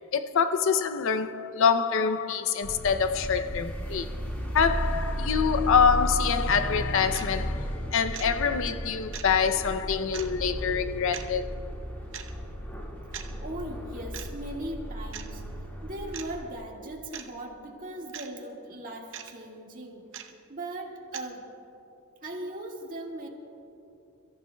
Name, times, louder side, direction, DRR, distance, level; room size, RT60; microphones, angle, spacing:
voice 1, 0.1-4.1 4.5-11.6, left 6 dB, 60° left, 0.5 m, -25 dB
sound 1, 2.6-16.5, equal, 10° left, 1.8 m, -34 dB
sound 2, 7.1-7.3 8.1-8.3 9.1-9.3 10.1-10.3 11.1-11.3 12.1-12.3 13.1-13.3 14.1-14.3 15.1-15.3 16.1-16.3 17.1-17.3 18.1-18.3 19.1-19.3 20.1-20.3 21.1-21.2, right 9 dB, 60° right, 0.8 m, -39 dB
voice 2, 13.4-15.4 15.8-21.4 22.2-23.3, right 1 dB, 40° right, 1.8 m, -39 dB
29.5 x 14.5 x 2.2 m
head